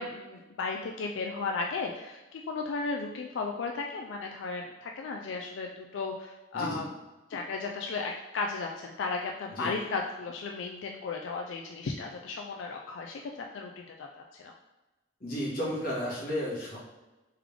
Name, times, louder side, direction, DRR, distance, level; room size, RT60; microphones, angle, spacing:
voice 1, 0.0-6.9 7.3-14.5, left 4 dB, 85° left, 1 dB, 0.4 m, -35 dB
voice 2, 15.2-16.8, equal, 50° left, -6 dB, 1.5 m, -33 dB
3.6 x 3.4 x 3.3 m, 1.1 s
head